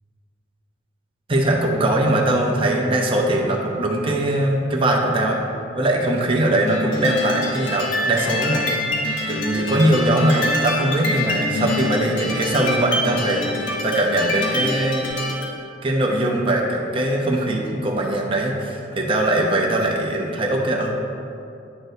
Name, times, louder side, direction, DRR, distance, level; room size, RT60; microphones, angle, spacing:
voice 1, 1.3-5.4 5.7-8.7 9.3-15.0 15.8-20.9, right 1 dB, 25° right, -1 dB, 0.6 m, -21 dB
sound 1, 6.7-15.5, left 1 dB, 65° left, 1.0 m, -26 dB
9.0 x 5.9 x 2.7 m, 2.5 s
head